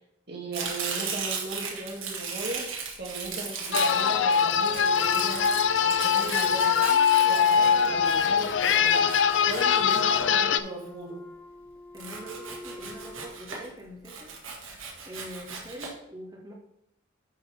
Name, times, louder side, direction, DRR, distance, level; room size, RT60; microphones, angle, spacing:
voice 1, 0.3-2.6 3.0-5.5 5.9-6.7 7.3-9.1 9.5-11.2, right 2 dB, 50° right, -2 dB, 2.2 m, -37 dB
Domestic sounds home sounds, 0.5-10.8 11.9-13.7 14.0-15.9, right 5 dB, 80° right, 1.9 m, -37 dB
sound 1, 3.7-10.6, left 7 dB, 60° left, 0.4 m, -22 dB
Wind instrument woodwind instrument, 4.8-13.6, left 2 dB, 10° left, 1.0 m, -44 dB
voice 2, 11.9-14.4 15.0-16.5, equal, 20° right, -3 dB, 2.1 m, -43 dB
10.5 x 4.7 x 3.6 m, 0.77 s
head